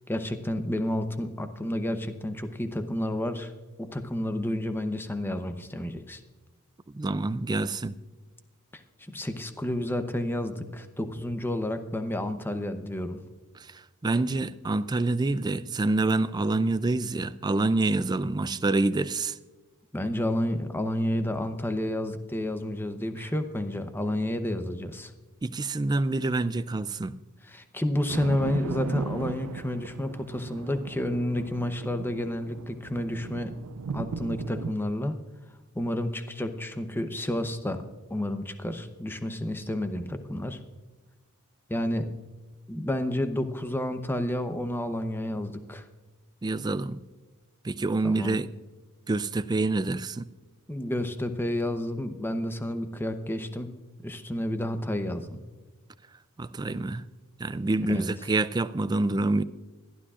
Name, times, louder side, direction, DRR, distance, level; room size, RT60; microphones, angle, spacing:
voice 1, 0.1-3.5 3.8-6.2 8.7-13.2 19.9-25.1 27.5-33.5 33.9-35.1 35.7-37.8 38.1-40.6 41.7-42.1 42.7-45.8 48.0-48.4 50.7-53.7 54.0-55.4 57.9-58.1, left 1 dB, 10° left, 0.7 m, -30 dB
voice 2, 6.9-8.0 13.6-19.4 25.4-27.1 46.4-47.0 47.6-48.5 49.1-50.3 56.4-57.0 57.4-59.4, right 2 dB, 20° right, 0.3 m, -27 dB
sound 1, 28.1-34.8, right 5 dB, 85° right, 0.4 m, -37 dB
21.0 x 12.5 x 2.4 m
head